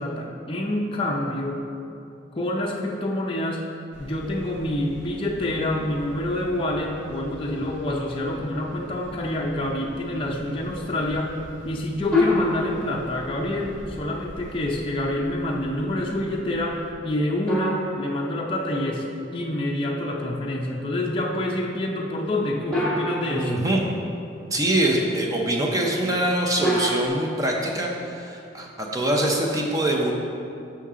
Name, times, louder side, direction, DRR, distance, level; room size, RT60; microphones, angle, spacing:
voice 1, 0.0-1.6 2.3-3.6 4.0-11.3 11.6-19.0 19.3-23.5, left 1 dB, 25° left, -1 dB, 0.5 m, -27 dB
sound 1, 3.9-16.9, equal, 65° right, 0.9 m, -44 dB
sound 2, 12.1-13.2 17.5-19.0 22.7-23.9 26.6-27.1, left 1 dB, 5° left, 1.2 m, -26 dB
voice 2, 23.3-23.8 24.5-30.1, right 1 dB, 20° right, -1 dB, 0.6 m, -24 dB
7.0 x 5.7 x 3.6 m, 2.6 s
head